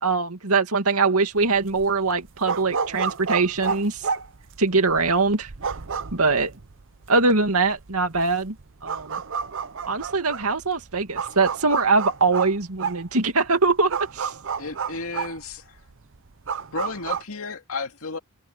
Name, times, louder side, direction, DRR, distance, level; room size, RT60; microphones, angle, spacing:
voice 1, 0.0-4.1 4.6-5.5 6.1-6.5 7.1-8.6 8.8-9.2 9.9-14.3, right 3 dB, 80° right, 2.4 m, -22 dB
sound 1, 1.4-17.2, right 6 dB, 60° right, 0.9 m, -31 dB
voice 2, 14.6-15.8 16.7-18.2, left 4 dB, 70° left, 2.4 m, -33 dB
head